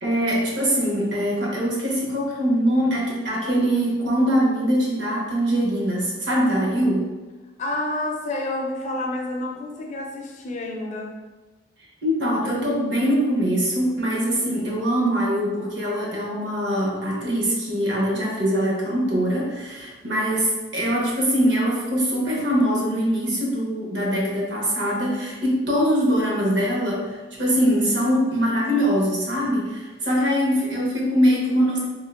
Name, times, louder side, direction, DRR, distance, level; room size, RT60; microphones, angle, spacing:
voice 1, 0.0-7.1 12.0-31.9, equal, 65° right, -4 dB, 0.9 m, -22 dB
voice 2, 7.6-11.2, left 1 dB, 40° left, 0 dB, 0.4 m, -29 dB
3.6 x 2.8 x 2.3 m, 1.2 s
head